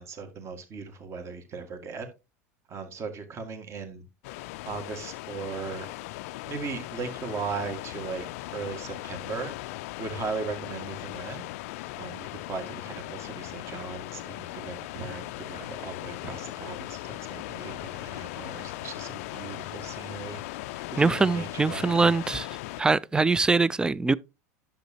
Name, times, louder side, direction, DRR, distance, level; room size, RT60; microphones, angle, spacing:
voice 1, 0.0-2.1 2.7-4.0 4.6-5.9 6.5-8.3 8.5-9.5 10.0-11.4 12.0-20.4 20.9-22.4, right 5 dB, 35° right, 1.8 m, -37 dB
sound 1, 4.2-22.8, left 18 dB, 60° left, 0.4 m, -38 dB
voice 2, 21.0-22.5 22.8-24.1, right 3 dB, 10° right, 0.4 m, -23 dB
10.5 x 7.4 x 2.8 m
hypercardioid pair, 90°, 8 cm